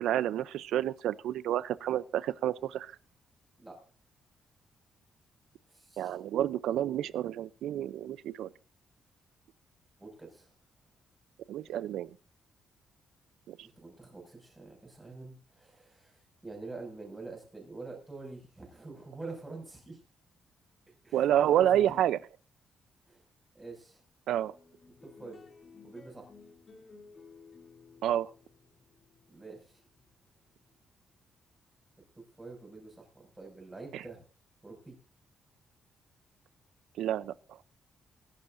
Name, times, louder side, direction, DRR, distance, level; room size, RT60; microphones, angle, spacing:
voice 1, 0.0-2.9 6.0-8.5 11.5-12.1 13.5-13.6 21.1-22.2 24.3-24.5 28.0-28.3 33.9-34.0 37.0-37.3, right 11 dB, 90° right, 0.6 m, -29 dB
voice 2, 5.7-6.2 10.0-10.5 11.6-11.9 13.6-20.0 21.0-22.1 23.1-23.2 23.5-24.0 25.0-25.4 25.8-26.3 29.3-29.8 32.2-34.2 34.6-34.9, right 3 dB, 15° right, 6.2 m, -46 dB
sound 1, 24.4-31.1, left 4 dB, 40° left, 2.9 m, -56 dB
22.5 x 11.5 x 2.6 m
cardioid pair, 120°, 0 cm